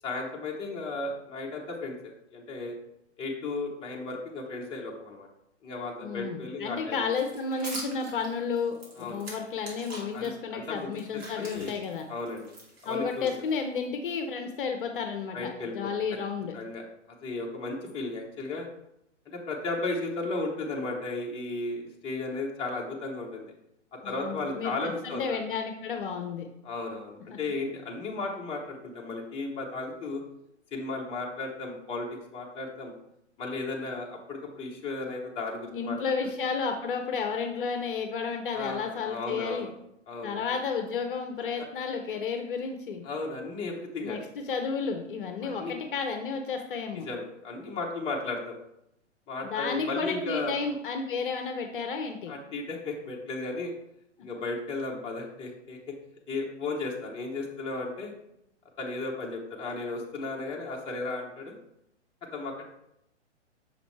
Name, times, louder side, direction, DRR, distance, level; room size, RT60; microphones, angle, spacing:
voice 1, 0.0-2.0 2.3-2.7 3.2-5.3 5.6-7.1 9.0-9.2 10.1-11.8 12.1-12.5 12.8-13.3 15.3-15.9 16.5-16.8 17.2-18.7 19.3-23.5 23.9-25.4 26.6-30.2 30.7-32.1 32.3-32.9 33.4-36.0 38.5-39.7 40.1-40.4 43.0-44.2 45.4-45.7 47.0-48.5 49.3-50.5 52.3-53.7 54.2-56.0 56.3-58.1 58.8-61.6 62.3-62.6, left 3 dB, 15° left, -2 dB, 0.9 m, -35 dB
voice 2, 6.0-12.1 12.8-16.6 24.0-24.7 25.0-26.5 27.3-27.4 35.7-39.7 40.2-43.0 44.0-47.1 49.4-52.3, left 5 dB, 45° left, 5 dB, 0.7 m, -32 dB
sound 1, 7.1-10.3 10.8-13.8, right 1 dB, 60° right, 2.2 m, -44 dB
6.4 x 5.0 x 3.2 m, 0.81 s
figure-of-eight pair, 120°, 36 cm